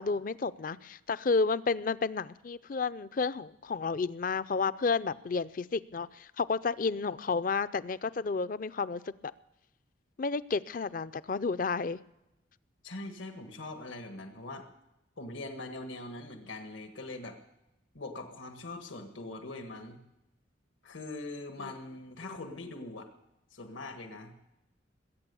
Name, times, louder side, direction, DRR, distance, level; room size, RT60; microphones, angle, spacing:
voice 1, 0.0-9.0 10.2-12.0 21.6-21.7 22.2-22.5, left 4 dB, 45° left, 17 dB, 0.4 m, -31 dB
voice 2, 12.8-14.7 15.2-17.4 17.9-20.0 20.8-23.1 23.5-24.5, left 2 dB, 85° left, 5 dB, 1.7 m, -42 dB
21.0 x 8.8 x 6.9 m, 0.90 s
head